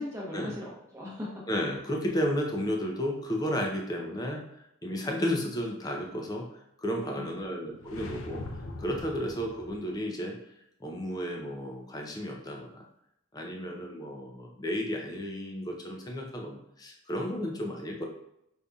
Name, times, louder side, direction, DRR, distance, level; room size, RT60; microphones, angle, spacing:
voice 1, 0.0-1.4 7.1-7.8, left 2 dB, 15° right, -5 dB, 0.9 m, -40 dB
voice 2, 1.5-4.4 4.8-8.5 8.8-10.4 10.8-12.8 13.3-18.1, equal, 20° left, 1 dB, 0.5 m, -33 dB
sound 1, 7.8-10.0, left 2 dB, 75° left, 0.5 m, -42 dB
5.0 x 2.6 x 2.3 m, 0.79 s
head